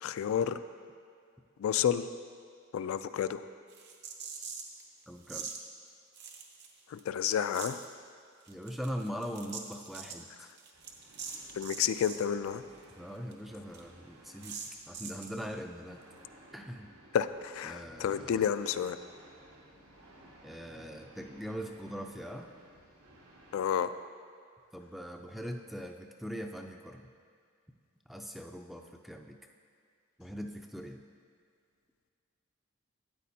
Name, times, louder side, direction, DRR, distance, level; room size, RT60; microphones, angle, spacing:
voice 1, 0.0-0.6 1.6-2.1 2.7-3.4 6.9-7.8 11.6-12.6 17.1-19.0 23.5-23.9, left 8 dB, 70° left, 12 dB, 0.3 m, -30 dB
sound 1, 3.7-4.8 5.2-5.6 6.2-7.0 7.3-7.9 8.4-12.3 12.5-12.6 12.9-13.0 13.3-13.4 13.7-13.8 14.4-15.4, right 6 dB, 50° right, 0.8 m, -43 dB
voice 2, 5.1-5.6 8.5-10.5 13.0-14.6 14.9-16.0 16.5-16.9 17.6-18.4 20.4-22.5 24.7-27.1 28.1-29.4 30.2-31.0, equal, ahead, 3 dB, 0.4 m, -41 dB
sound 2, 10.7-23.8, right 1 dB, 75° right, 1.5 m, -58 dB
12.5 x 9.1 x 2.7 m, 2.2 s
head